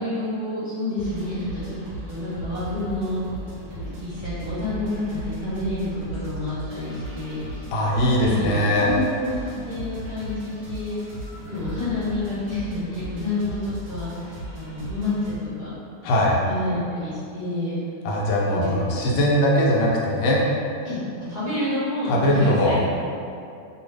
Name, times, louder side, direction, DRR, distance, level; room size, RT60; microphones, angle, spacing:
voice 1, 0.0-1.8 2.1-3.2 3.7-7.6 8.0-11.2 11.5-15.1 15.6-15.7 16.0-17.7 18.5-19.3 20.8-21.0 21.3-22.8, left 2 dB, 35° right, -13 dB, 0.9 m, -29 dB
sound 1, 1.0-15.4, right 1 dB, 65° right, 1.0 m, -37 dB
voice 2, 7.7-8.9 16.0-16.4 18.0-20.4 22.1-22.8, left 1 dB, 80° left, -4 dB, 1.2 m, -20 dB
2.7 x 2.6 x 3.2 m, 2.5 s
omnidirectional pair, 1.9 m